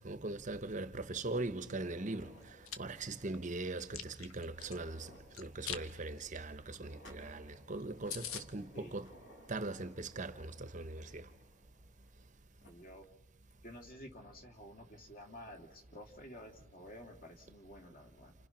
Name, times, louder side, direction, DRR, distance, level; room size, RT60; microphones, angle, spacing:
voice 1, 0.0-9.1 9.5-11.3, right 2 dB, 35° right, 0.9 m, -41 dB
sound 1, 1.5-12.3 12.6-12.7 13.5-13.6 14.1-14.2 15.5-15.8, equal, 65° left, 5.6 m, -61 dB
Chewing mastication, 2.4-2.8 3.3-4.8 5.3-5.8 6.2-6.4 6.7-6.8 7.1-7.2 7.5-7.6 7.8-7.9 8.1-8.4, left 9 dB, 85° left, 1.3 m, -42 dB
voice 2, 12.7-13.1 13.6-18.3, equal, 40° left, 2.7 m, -52 dB
29.5 x 29.5 x 6.0 m
head